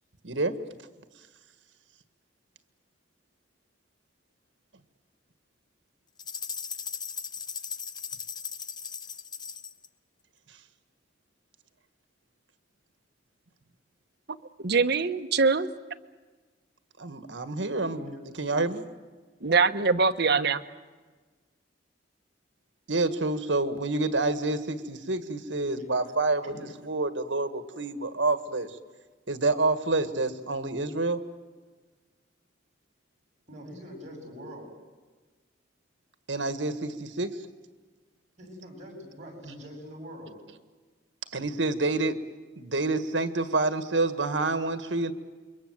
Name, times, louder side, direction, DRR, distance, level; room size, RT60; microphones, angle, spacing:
voice 1, 0.2-0.6 17.0-18.0 18.4-18.8 22.9-28.7 29.3-31.2 36.3-37.4 41.3-42.2 42.5-45.1, right 2 dB, 80° right, 1.7 m, -28 dB
sound 1, 6.2-9.9, left 6 dB, 25° left, 0.8 m, -37 dB
voice 2, 14.6-15.7 19.4-20.6, right 4 dB, 60° right, 1.1 m, -23 dB
voice 3, 33.5-34.7 38.4-40.4, equal, 40° right, 7.9 m, -43 dB
28.0 x 23.5 x 7.9 m
head